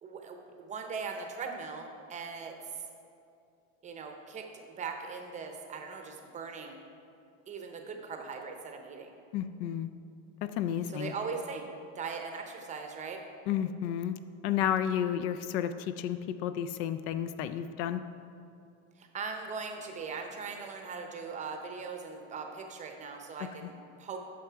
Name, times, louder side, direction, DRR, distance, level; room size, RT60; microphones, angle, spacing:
voice 1, 0.0-2.5 3.8-6.8 7.5-9.1 10.9-11.7 12.0-13.2 19.0-24.2, right 5 dB, 20° right, 4 dB, 0.7 m, -40 dB
voice 2, 9.3-9.9 10.4-11.1 13.5-14.2 14.4-18.0 23.6-23.7, left 10 dB, 65° left, 12 dB, 0.5 m, -32 dB
9.3 x 6.4 x 4.6 m, 2.5 s
cardioid pair, 160°, 33 cm